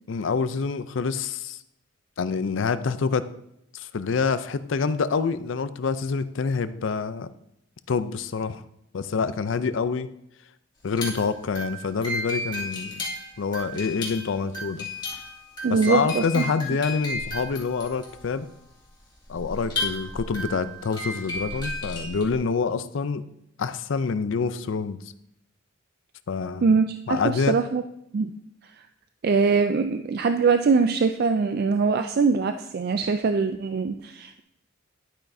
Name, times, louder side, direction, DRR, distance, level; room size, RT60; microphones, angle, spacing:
voice 1, 0.1-1.6 2.2-3.3 3.7-7.3 7.9-8.6 8.9-10.1 10.8-13.0 13.4-14.9 15.7-18.5 19.3-23.2 23.6-25.0 26.3-26.7 27.1-27.6, left 5 dB, 70° left, 13 dB, 0.5 m, -26 dB
sound 1, 10.8-22.3, left 1 dB, 25° left, 2.4 m, -34 dB
voice 2, 15.6-16.4 26.6-27.8 28.1-28.3 29.2-34.4, right 4 dB, 50° right, 8 dB, 0.3 m, -22 dB
11.0 x 8.9 x 2.7 m, 0.77 s
head